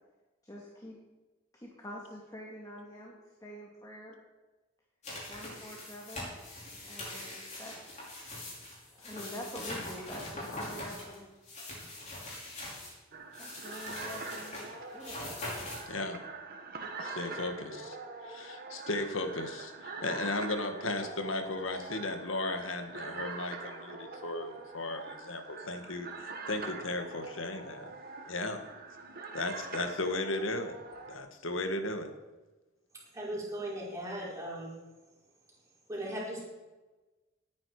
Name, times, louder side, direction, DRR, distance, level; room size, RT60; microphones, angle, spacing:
voice 1, 0.4-1.0 1.5-4.2 5.3-6.3 6.8-7.7 8.9-11.3 13.4-14.6 14.9-15.2, equal, 20° left, -2 dB, 2.1 m, -46 dB
sound 1, 5.0-12.9 13.3-15.8, left 1 dB, 35° left, 5.7 m, -42 dB
sound 2, 13.1-31.2, right 3 dB, 50° right, 1.8 m, -44 dB
voice 2, 15.9-16.2 17.0-18.0 18.2-27.9 28.3-28.6 29.3-30.8 31.1-32.1, left 2 dB, 85° left, 6 dB, 1.7 m, -35 dB
voice 3, 33.1-34.7 35.9-36.4, right 1 dB, 15° right, -5 dB, 5.1 m, -37 dB
19.0 x 9.5 x 4.9 m, 1.2 s
head